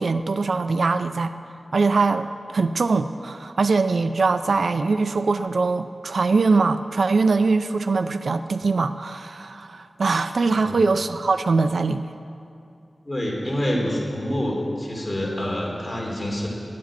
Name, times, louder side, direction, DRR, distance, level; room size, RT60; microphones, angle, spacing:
voice 1, 0.0-1.3 1.7-12.1, right 4 dB, 80° right, 10 dB, 0.4 m, -22 dB
voice 2, 13.0-16.5, equal, 25° left, -2 dB, 2.8 m, -27 dB
11.5 x 7.4 x 9.2 m, 2.6 s
wide cardioid pair, 70°, 0 cm